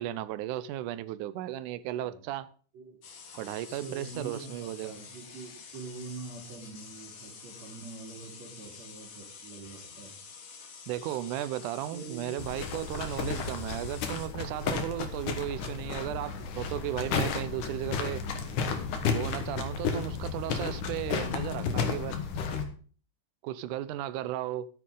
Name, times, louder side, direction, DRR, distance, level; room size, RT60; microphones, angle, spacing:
voice 1, 0.0-2.5 3.4-5.0 10.9-18.2 19.1-22.2 23.4-24.7, right 13 dB, 80° right, 2.1 m, -35 dB
voice 2, 1.9-2.3 2.7-3.0 3.7-10.2 11.7-12.4, right 4 dB, 55° right, 3.8 m, -44 dB
sound 1, 3.0-14.3, left 6 dB, 90° left, 3.5 m, -48 dB
sound 2, 12.4-22.6, left 5 dB, 70° left, 2.9 m, -33 dB
14.0 x 9.5 x 3.8 m
omnidirectional pair, 3.7 m